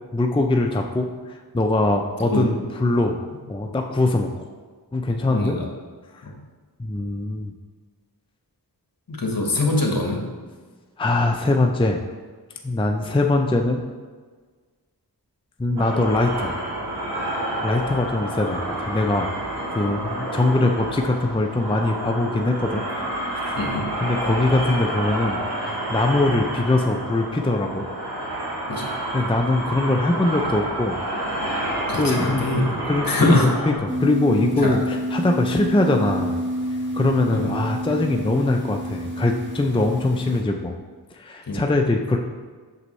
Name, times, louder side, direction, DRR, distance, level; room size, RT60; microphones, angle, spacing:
voice 1, 0.1-3.2 3.5-4.3 4.9-5.6 6.8-7.5 11.0-12.0 12.6-13.8 15.6-16.6 17.6-19.3 19.7-22.8 24.0-27.9 29.1-31.0 32.0-32.4 32.9-36.4 36.9-40.8 41.1-42.2, left 2 dB, 15° left, 3 dB, 0.5 m, -22 dB
voice 2, 5.3-5.7 6.2-6.3 9.1-10.2 20.0-20.1 23.6-23.9 28.7-28.9 31.9-32.7 33.0-33.5 34.6-34.8 37.3-37.5 41.5-41.6, left 2 dB, 55° left, 0 dB, 1.4 m, -23 dB
sound 1, 15.8-33.8, right 1 dB, 80° right, 1.7 m, -29 dB
sound 2, 33.9-40.4, equal, 30° right, 1.8 m, -28 dB
8.2 x 6.2 x 3.2 m, 1.5 s
wide cardioid pair, 65°, 40 cm